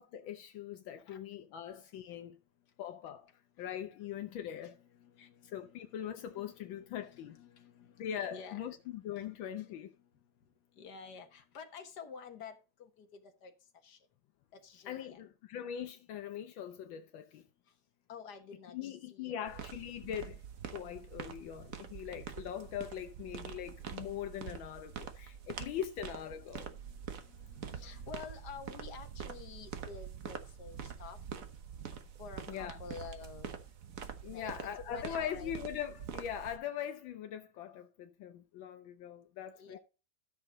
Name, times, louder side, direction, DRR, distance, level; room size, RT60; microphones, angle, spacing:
voice 1, 0.0-2.4 2.8-3.3 3.6-4.8 5.2-7.4 8.0-9.9 14.9-17.4 18.7-20.4 20.7-26.7 32.5-32.8 34.2-39.8, left 9 dB, 80° left, 1.5 m, -41 dB
voice 2, 4.1-8.6 8.8-9.7 10.0-10.1 10.8-13.5 13.8-14.0 14.5-15.2 18.1-19.6 26.6-31.2 32.2-33.6 34.3-34.5 34.9-35.5 39.6-39.8, left 6 dB, 60° left, 1.9 m, -51 dB
sound 1, 19.5-36.6, right 7 dB, 50° right, 1.3 m, -45 dB
13.0 x 6.4 x 3.9 m
omnidirectional pair, 2.1 m